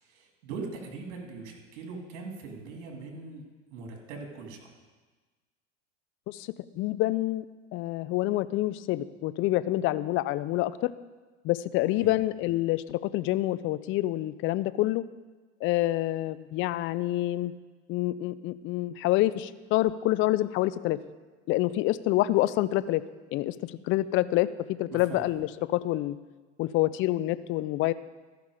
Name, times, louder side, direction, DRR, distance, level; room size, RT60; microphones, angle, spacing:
voice 1, 0.0-3.4 3.7-4.7 12.0-12.2 24.9-25.2, right 4 dB, 65° right, 2 dB, 2.6 m, -41 dB
voice 2, 6.3-7.4 7.7-10.9 11.4-15.0 15.6-17.5 17.9-21.0 21.5-23.0 23.3-26.1 26.6-27.9, left 16 dB, 35° left, 16 dB, 0.4 m, -27 dB
13.5 x 5.8 x 4.9 m, 1.3 s
hypercardioid pair, 95°, 38 cm